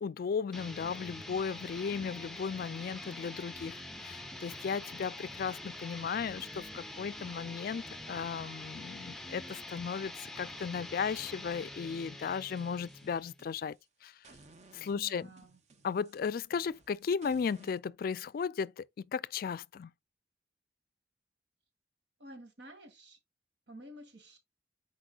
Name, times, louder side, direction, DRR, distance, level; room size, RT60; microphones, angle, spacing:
voice 1, 0.0-13.8 14.0-14.1 14.7-15.3 15.8-19.9, left 6 dB, 55° left, 0.3 m, -35 dB
sound 1, 0.5-13.4, left 1 dB, ahead, 0.7 m, -45 dB
sound 2, 12.4-13.8 14.2-17.8, right 3 dB, 40° right, 0.8 m, -60 dB
voice 2, 14.9-15.6 22.2-23.2 23.7-24.4, right 1 dB, 80° right, 1.9 m, -51 dB
9.9 x 4.4 x 2.4 m
head